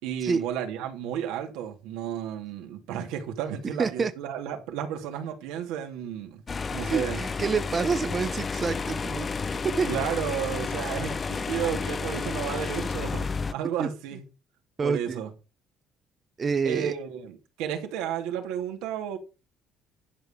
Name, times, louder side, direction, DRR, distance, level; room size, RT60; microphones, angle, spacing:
voice 1, 0.0-6.4 6.7-7.2 9.8-14.2 14.8-15.3 16.6-19.2, right 9 dB, 90° right, 2.8 m, -32 dB
voice 2, 3.8-4.1 6.8-9.3 9.8-9.9 13.8-13.9 14.8-15.2 16.4-16.9, right 5 dB, 35° right, 1.1 m, -27 dB
sound 1, 6.5-13.5, left 4 dB, 35° left, 0.8 m, -31 dB
11.5 x 5.6 x 6.8 m
cardioid pair, 90°, 0 cm